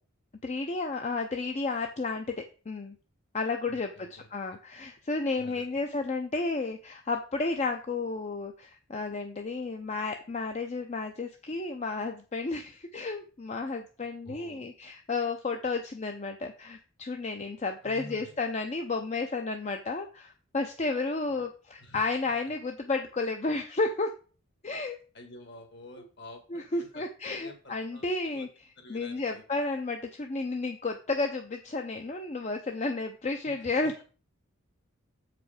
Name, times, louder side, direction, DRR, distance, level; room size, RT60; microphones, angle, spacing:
voice 1, 0.4-3.0 3.3-24.1 24.6-25.0 26.5-28.5 28.9-34.0, left 3 dB, 35° left, 5 dB, 0.5 m, -32 dB
voice 2, 3.7-4.3 5.4-5.8 14.2-14.7 17.8-18.3 21.4-21.5 21.8-22.0 25.1-28.5 28.8-29.4 33.4-33.7, left 1 dB, 55° left, 6 dB, 1.7 m, -49 dB
7.3 x 5.0 x 4.9 m, 0.37 s
head